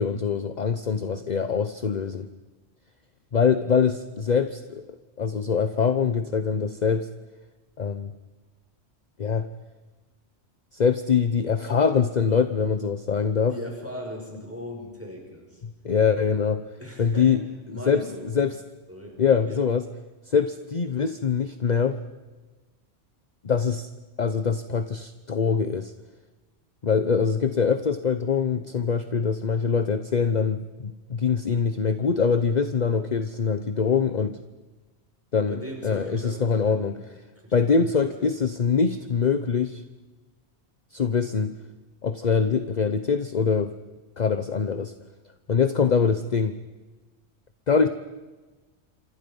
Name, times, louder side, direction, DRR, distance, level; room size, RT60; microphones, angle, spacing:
voice 1, 0.0-2.3 3.3-4.8 5.2-7.1 7.8-8.1 9.2-9.5 10.7-13.5 15.6-16.6 17.0-17.4 17.9-18.0 18.3-18.6 19.2-19.8 20.3-22.0 23.4-23.9 24.2-25.9 26.8-34.4 35.3-36.9 37.5-39.8 40.9-41.5 42.0-43.7 44.2-44.9 45.5-46.5 47.7-47.9, left 6 dB, 40° left, 10 dB, 0.9 m, -23 dB
voice 2, 13.5-15.6 16.8-17.3 17.7-18.3 18.9-19.6 35.4-37.0 37.4-38.1, left 1 dB, 10° right, 1 dB, 6.0 m, -39 dB
27.0 x 26.5 x 5.4 m, 1.2 s
omnidirectional pair, 1.1 m